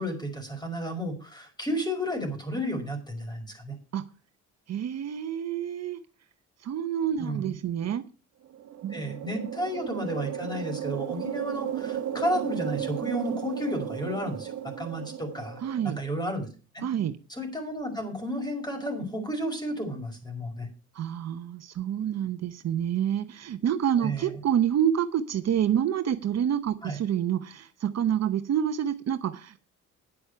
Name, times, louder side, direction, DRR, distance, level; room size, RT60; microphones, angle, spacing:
voice 1, 0.0-3.8 7.2-7.5 8.9-16.5 16.7-16.8 17.3-20.7 24.0-24.3 26.8-27.0, equal, 15° left, 4 dB, 5.4 m, -32 dB
voice 2, 4.7-6.0 6.6-8.0 8.8-9.5 15.6-16.0 16.8-17.1 20.9-29.6, right 9 dB, 60° right, 10 dB, 0.9 m, -28 dB
sound 1, 8.5-16.1, right 10 dB, 75° right, 1.5 m, -35 dB
10.0 x 7.9 x 6.8 m, 0.35 s
cardioid pair, 90°, 30 cm